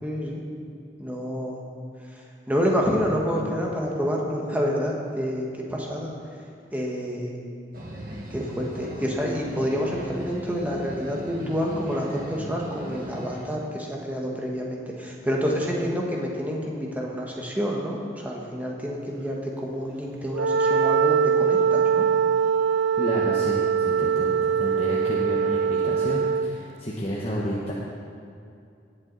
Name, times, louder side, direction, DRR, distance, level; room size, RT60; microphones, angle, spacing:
voice 1, 0.0-0.4 1.0-1.6 2.0-6.1 6.7-7.4 8.3-22.0, equal, 10° right, -2 dB, 1.4 m, -28 dB
sound 1, 7.7-13.5, right 1 dB, 50° right, 2.0 m, -39 dB
Wind instrument woodwind instrument, 20.3-26.6, right 6 dB, 85° right, 0.3 m, -22 dB
voice 2, 23.0-27.7, equal, 35° left, -5 dB, 1.1 m, -31 dB
18.5 x 7.6 x 4.0 m, 2.4 s
head